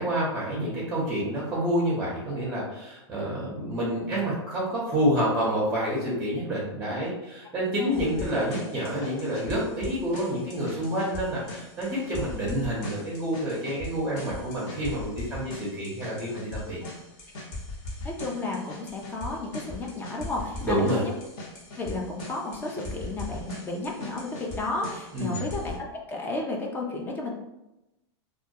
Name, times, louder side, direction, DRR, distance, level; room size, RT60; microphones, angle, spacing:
voice 1, 0.0-16.8 20.6-21.0 25.1-25.4, equal, 10° right, -6 dB, 0.7 m, -28 dB
sound 1, 7.9-25.7, left 2 dB, 45° left, 0.9 m, -40 dB
voice 2, 18.0-21.1 21.8-27.3, left 2 dB, 15° left, -1 dB, 0.3 m, -33 dB
2.2 x 2.1 x 2.6 m, 0.93 s
supercardioid pair, 140°, 15 cm